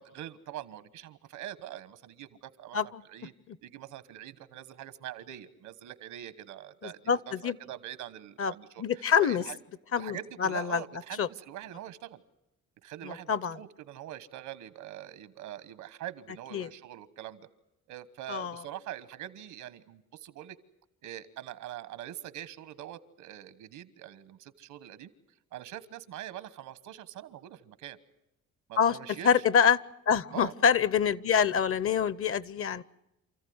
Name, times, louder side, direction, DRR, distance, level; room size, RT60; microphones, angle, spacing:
voice 1, 0.0-2.8 3.0-3.3 3.6-9.6 10.0-12.2 12.8-17.5 17.9-20.6 21.0-25.1 25.5-28.0 28.7-29.3 30.3-30.5, right 12 dB, 90° right, 15 dB, 1.3 m, -43 dB
voice 2, 6.8-7.5 8.4-8.5 8.8-9.4 9.9-10.8 11.2-11.3 13.0-13.6 16.5-16.7 18.3-18.6 28.8-29.0 29.2-29.8 30.1-32.8, left 7 dB, 45° left, 21 dB, 0.8 m, -26 dB
28.0 x 14.5 x 9.5 m, 0.92 s
cardioid pair, 90°, 30 cm